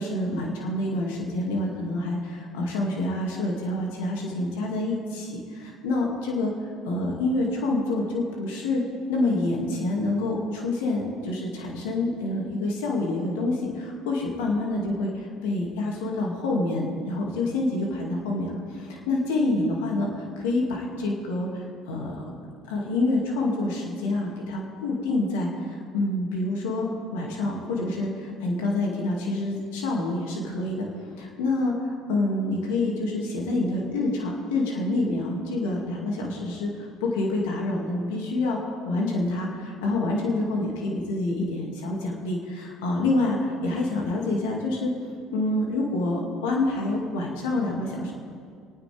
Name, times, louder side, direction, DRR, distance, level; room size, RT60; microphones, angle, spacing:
voice 1, 0.0-6.5 6.9-8.8 9.1-22.3 22.7-44.9 45.3-48.1, left 2 dB, 80° left, -1 dB, 2.4 m, -27 dB
28.0 x 9.4 x 3.5 m, 2.2 s
hypercardioid pair, 75°, 0 cm